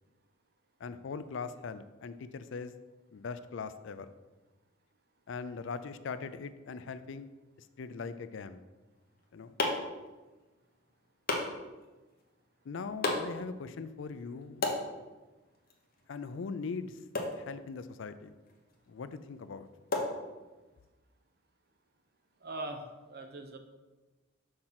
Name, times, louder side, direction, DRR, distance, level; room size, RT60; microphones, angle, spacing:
voice 1, 0.8-2.7 3.1-4.1 5.3-7.3 7.6-8.6 9.3-9.5 12.6-14.7 16.1-17.0 17.4-18.3 18.9-19.7, left 5 dB, 60° left, 12 dB, 0.4 m, -41 dB
sound 1, 8.9-20.9, left 2 dB, 45° left, 1.1 m, -39 dB
voice 2, 22.4-23.6, right 2 dB, 50° right, 5 dB, 0.9 m, -41 dB
6.6 x 4.3 x 5.7 m, 1.2 s
head